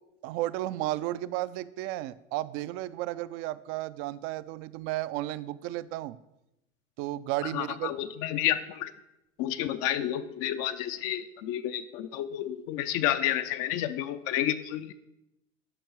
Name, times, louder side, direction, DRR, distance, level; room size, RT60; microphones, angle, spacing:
voice 1, 0.2-6.2 7.0-7.9, right 15 dB, 40° right, 16 dB, 0.4 m, -33 dB
voice 2, 7.4-8.9 9.4-14.9, left 12 dB, 40° left, 10 dB, 0.5 m, -30 dB
12.0 x 4.6 x 4.6 m, 0.89 s
hypercardioid pair, 90°, 37 cm